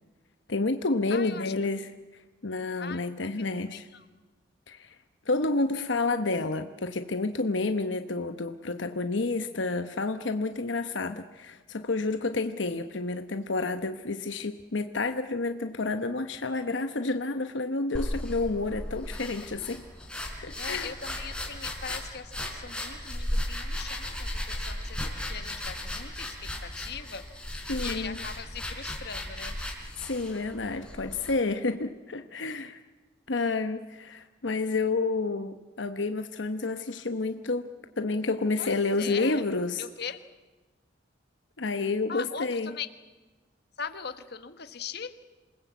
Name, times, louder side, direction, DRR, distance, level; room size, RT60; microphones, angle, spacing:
voice 1, 0.5-1.9 2.4-3.9 4.7-4.9 5.3-19.8 20.4-20.9 27.7-28.2 30.0-32.8 33.3-37.7 38.0-39.9 41.6-42.7, left 3 dB, 80° left, 8 dB, 1.0 m, -30 dB
voice 2, 1.1-1.5 2.8-4.1 5.4-6.2 20.6-27.3 27.5-29.6 38.6-39.4 39.8-40.3 42.1-42.9 43.8-45.1, left 6 dB, 60° left, 10 dB, 1.4 m, -41 dB
sound 1, 17.9-31.4, left 1 dB, 5° left, 4.0 m, -36 dB
27.5 x 19.5 x 8.2 m, 1.2 s
head